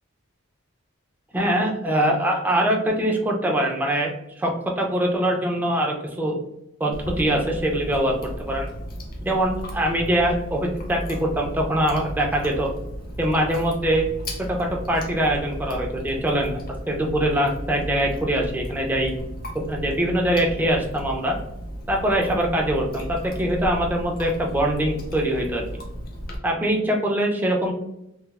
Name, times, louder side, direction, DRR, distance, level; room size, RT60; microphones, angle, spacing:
voice 1, 1.3-6.3 6.8-8.1 8.5-8.7 9.3-12.7 13.2-14.1 14.5-16.6 16.9-19.1 19.7-21.3 21.9-25.6 26.4-27.7, right 1 dB, 10° right, 0 dB, 0.4 m, -23 dB
Chewing mastication, 6.9-26.4, equal, 45° left, 0.5 m, -35 dB
3.0 x 2.0 x 2.3 m, 0.84 s
head